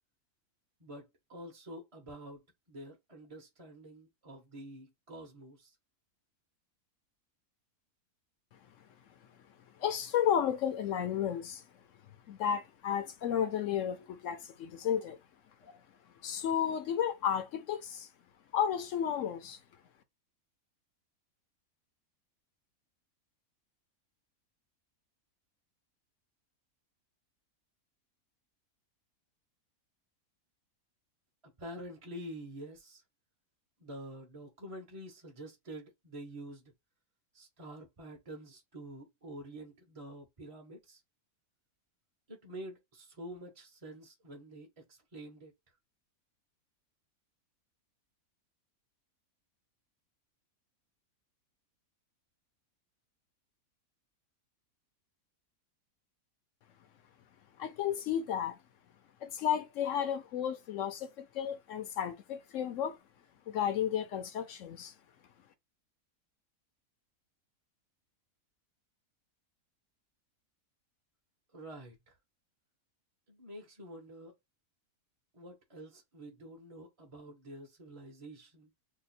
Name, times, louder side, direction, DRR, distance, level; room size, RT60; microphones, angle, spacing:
voice 1, 0.8-5.8 31.4-33.0 33.8-36.7 37.3-41.0 42.3-45.5 71.5-72.1 73.3-74.3 75.3-78.7, right 1 dB, 30° right, 0.7 m, -48 dB
voice 2, 9.8-11.6 12.3-15.2 15.6-15.7 16.2-18.1 18.5-19.6 57.6-58.6 59.2-63.0 63.5-64.9, left 9 dB, 65° left, 0.9 m, -33 dB
2.9 x 2.3 x 4.1 m
omnidirectional pair, 1.6 m